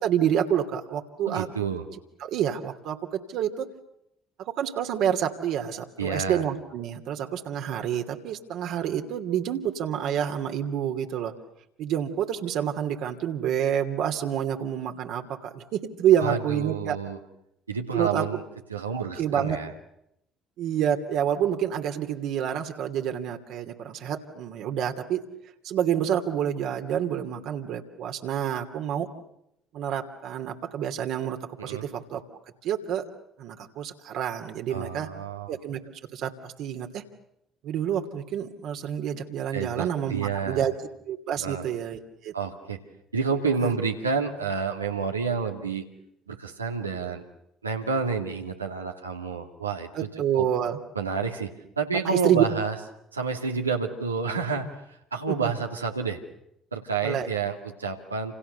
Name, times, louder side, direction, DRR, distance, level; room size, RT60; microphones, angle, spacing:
voice 1, 0.0-1.5 2.2-3.7 4.4-11.3 11.8-17.0 17.9-18.3 18.9-19.6 20.6-25.2 25.6-29.1 29.7-32.2 32.6-33.0 33.4-35.1 35.5-35.8 36.1-37.0 37.6-40.7 41.1-42.3 43.6-43.7 49.9-50.8 52.0-52.4 55.3-55.5 57.0-57.3, right 9 dB, 60° right, 4 dB, 2.8 m, -28 dB
voice 2, 1.2-1.8 6.0-6.4 16.2-17.2 17.7-18.4 18.7-19.7 31.6-31.8 34.7-35.5 39.5-40.7 41.4-41.6 42.3-42.8 43.1-45.9 46.3-47.2 47.6-49.9 50.3-50.5 50.9-52.7 53.1-56.2 56.7-58.4, right 5 dB, 90° right, 2 dB, 2.6 m, -29 dB
29.0 x 29.0 x 6.8 m, 0.80 s
figure-of-eight pair, 50°, 0 cm